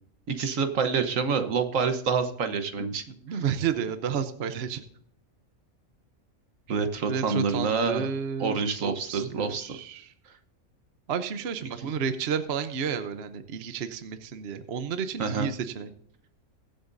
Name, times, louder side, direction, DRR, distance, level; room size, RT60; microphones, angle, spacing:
voice 1, 0.3-3.0 3.3-3.4 6.7-8.1 8.4-9.8 15.2-15.5, right 5 dB, 70° right, 9 dB, 1.4 m, -27 dB
voice 2, 2.8-4.8 7.1-8.6 8.8-10.1 11.1-15.9, right 7 dB, 55° right, 10 dB, 1.0 m, -31 dB
22.5 x 7.8 x 2.6 m, 0.65 s
omnidirectional pair, 1.4 m